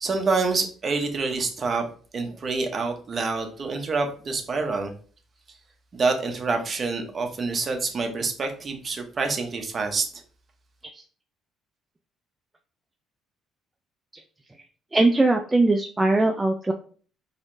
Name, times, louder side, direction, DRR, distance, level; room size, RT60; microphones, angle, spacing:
voice 1, 0.0-1.8 2.1-4.9 5.9-10.1, right 4 dB, 35° right, 4 dB, 0.8 m, -27 dB
voice 2, 14.9-16.7, right 2 dB, 15° right, 3 dB, 0.3 m, -20 dB
4.0 x 2.9 x 2.6 m, 0.42 s
cardioid pair, 120°, 0 cm